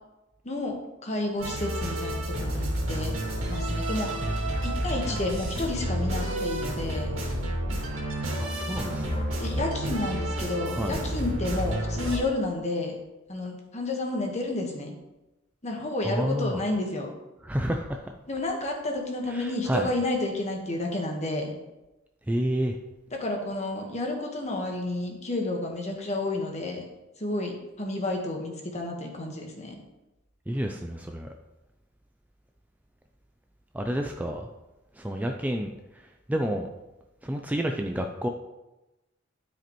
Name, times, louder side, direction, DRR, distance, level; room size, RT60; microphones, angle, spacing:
voice 1, 1.0-3.1 3.5-4.1 4.6-7.1 9.4-12.9 13.3-14.9 15.6-17.1 18.3-21.5 23.2-26.8 27.2-29.8, left 2 dB, 35° left, 1 dB, 1.3 m, -31 dB
sound 1, 1.4-12.2, right 1 dB, 85° right, 2.1 m, -30 dB
voice 2, 8.4-9.3 10.7-11.0 16.0-16.6 17.4-18.1 19.3-19.9 22.3-22.8 30.5-31.3 33.7-34.5 35.0-35.7 36.3-36.7 37.2-38.3, equal, 10° right, 3 dB, 0.4 m, -29 dB
12.5 x 5.0 x 3.0 m, 1.0 s
head